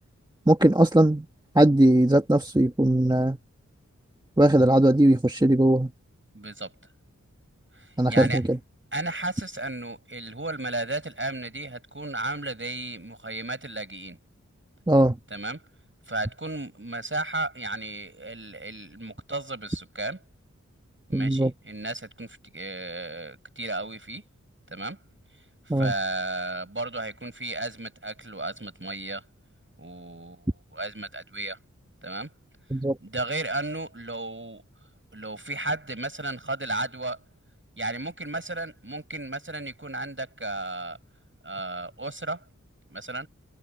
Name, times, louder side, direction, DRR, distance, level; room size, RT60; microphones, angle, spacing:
voice 1, 0.5-1.3 1.6-3.4 4.4-5.9 8.0-8.6 14.9-15.2 21.1-21.5 25.7-25.9 32.7-33.0, right 1 dB, 15° right, 1.6 m, -19 dB
voice 2, 6.3-6.7 7.7-8.4 8.9-14.2 15.3-15.6 16.1-20.2 21.1-24.2 24.7-25.0 25.8-29.2 29.8-31.6 32.0-32.3 33.0-34.6 35.1-37.2 37.8-41.0 41.4-42.4 42.9-43.3, right 2 dB, 40° right, 7.6 m, -34 dB
wide cardioid pair, 50°, 30 cm